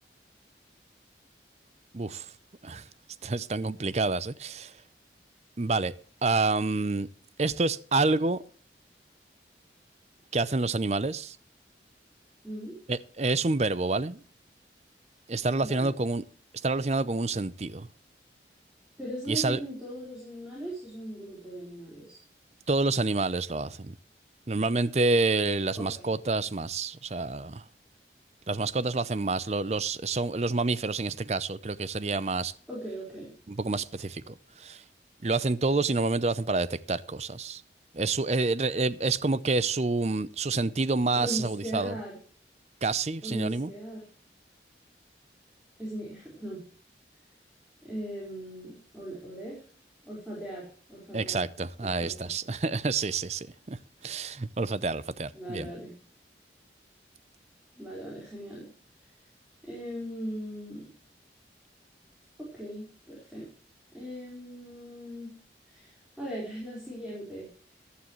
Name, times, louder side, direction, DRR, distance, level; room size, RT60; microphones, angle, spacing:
voice 1, 1.9-2.3 2.6-2.8 3.2-4.7 5.6-5.9 6.2-7.1 7.4-8.4 10.3-11.4 12.9-14.2 15.3-16.2 16.6-17.9 19.3-19.6 22.7-23.9 24.5-27.6 28.5-32.5 33.5-34.3 34.6-34.8 35.2-37.6 37.9-41.9 42.8-43.7 51.1-53.8 54.0-55.7, right 3 dB, 40° right, 0.6 m, -28 dB
voice 2, 12.4-12.8 15.6-15.9 19.0-22.2 25.7-26.1 32.7-33.3 41.1-42.2 43.2-44.0 45.8-46.6 47.8-49.6 50.0-51.4 51.8-52.3 55.3-55.9 57.7-58.7 59.6-60.9 62.4-63.5 63.9-65.4 65.7-67.5, equal, 5° right, 4.5 m, -39 dB
15.0 x 11.5 x 3.1 m
head